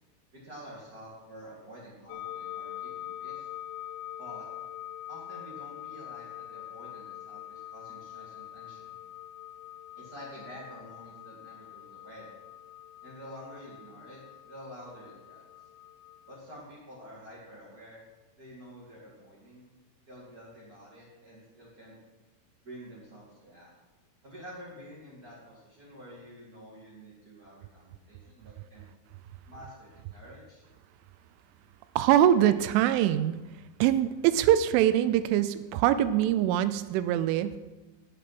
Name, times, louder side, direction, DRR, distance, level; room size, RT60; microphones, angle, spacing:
voice 1, 0.4-3.5 4.2-4.4 5.1-8.9 10.0-12.3 13.0-14.2 14.4-15.4 16.3-18.0 18.4-19.7 20.1-21.9 22.6-23.7 24.2-28.8 29.5-30.6, equal, 55° right, -7 dB, 1.0 m, -48 dB
sound 1, 2.1-16.4, left 12 dB, 80° left, 2.7 m, -44 dB
voice 2, 32.0-33.4 33.8-37.6, right 11 dB, 85° right, 13 dB, 3.0 m, -23 dB
10.0 x 8.5 x 6.0 m, 1.2 s
omnidirectional pair, 5.6 m